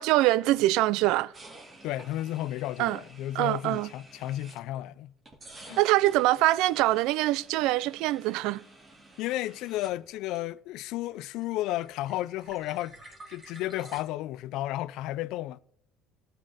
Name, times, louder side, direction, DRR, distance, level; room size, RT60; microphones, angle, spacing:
voice 1, 0.0-1.3 2.8-3.0 3.4-3.9 5.8-8.6, right 17 dB, 75° right, 0.3 m, -24 dB
sound 1, 1.3-4.9 5.3-10.8 11.1-14.0, right 2 dB, 25° right, 2.5 m, -51 dB
voice 2, 1.8-5.1 5.6-5.8 9.2-15.6, left 15 dB, 70° left, 0.4 m, -33 dB
18.0 x 8.1 x 4.1 m
cardioid pair, 120°, 0 cm